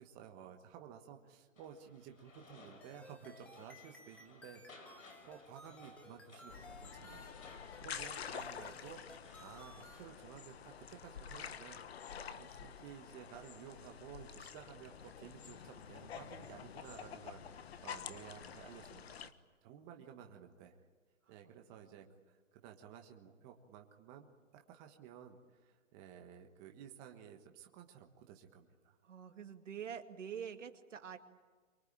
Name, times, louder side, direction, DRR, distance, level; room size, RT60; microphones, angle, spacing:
voice 1, 0.0-4.6 5.2-11.8 12.3-19.3 19.6-20.8 21.3-24.3 24.5-29.0, right 8 dB, 20° right, 3 dB, 1.4 m, -54 dB
sound 1, 1.5-10.4, left 3 dB, 85° left, 6.1 m, -61 dB
sound 2, 2.8-10.1, left 1 dB, 5° left, 0.8 m, -57 dB
sound 3, 6.5-19.3, left 8 dB, 50° left, 1.4 m, -49 dB
voice 2, 29.0-31.2, right 8 dB, 70° right, 6 dB, 2.3 m, -46 dB
24.5 x 24.0 x 8.9 m, 1.4 s
hypercardioid pair, 160°, 38 cm